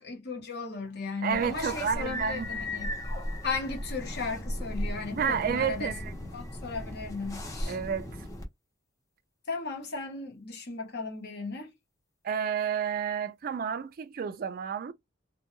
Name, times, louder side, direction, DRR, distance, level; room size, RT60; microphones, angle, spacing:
voice 1, 0.0-2.9 3.4-5.9 6.3-7.8 9.5-11.7, left 4 dB, 55° left, 0.9 m, -36 dB
voice 2, 1.2-2.7 5.1-6.1 7.7-8.1 12.2-14.9, right 7 dB, 50° right, 0.3 m, -30 dB
sound 1, 1.3-8.5, left 1 dB, 15° left, 0.6 m, -36 dB
2.2 x 2.1 x 3.0 m
head